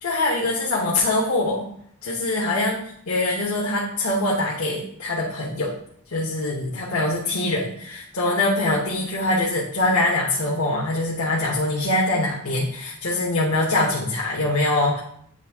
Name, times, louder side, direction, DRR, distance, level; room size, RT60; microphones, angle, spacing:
voice 1, 0.0-1.7 2.0-2.8 3.1-5.7 6.1-15.0, left 2 dB, 80° left, -4 dB, 1.2 m, -23 dB
9.2 x 3.5 x 3.6 m, 0.67 s
head